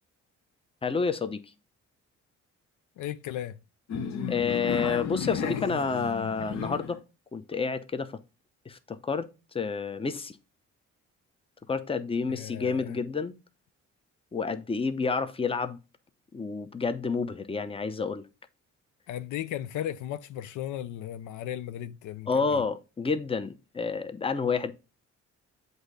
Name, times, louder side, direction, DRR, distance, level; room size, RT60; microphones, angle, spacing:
voice 1, 0.8-1.4 4.3-7.0 7.3-8.2 8.7-9.3 9.5-10.3 11.7-13.3 14.3-15.8 16.3-18.2 22.3-24.7, left 5 dB, 20° left, 0.7 m, -29 dB
voice 2, 3.0-3.5 12.3-13.0 19.1-22.6, left 11 dB, 80° left, 0.5 m, -36 dB
sound 1, 3.9-7.0, left 7 dB, 60° left, 0.9 m, -33 dB
7.9 x 2.7 x 5.0 m
cardioid pair, 90°, 30 cm